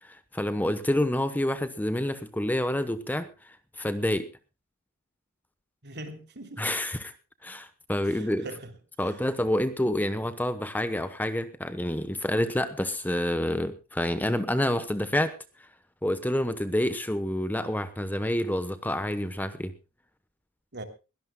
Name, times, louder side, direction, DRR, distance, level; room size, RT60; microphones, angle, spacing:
voice 1, 0.0-4.3 6.6-7.1 7.4-8.4 9.0-15.3 16.0-19.7, left 1 dB, 10° left, 1.0 m, -28 dB
voice 2, 5.8-6.7 8.0-8.7 9.0-9.3 20.7-20.8, right 2 dB, 55° right, 3.0 m, -42 dB
22.5 x 17.0 x 2.2 m
head